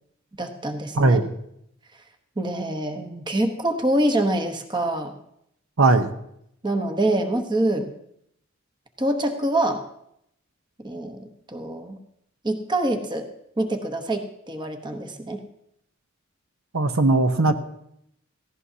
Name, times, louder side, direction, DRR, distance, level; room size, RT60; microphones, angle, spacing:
voice 1, 0.4-1.2 2.4-5.1 6.6-7.9 9.0-9.8 10.8-12.0 12.4-13.3 13.6-15.4, right 1 dB, 20° right, 5 dB, 1.0 m, -25 dB
voice 2, 1.0-1.3 5.8-6.1 16.7-17.5, right 2 dB, 70° right, 8 dB, 0.9 m, -18 dB
17.0 x 15.5 x 2.8 m, 0.76 s
head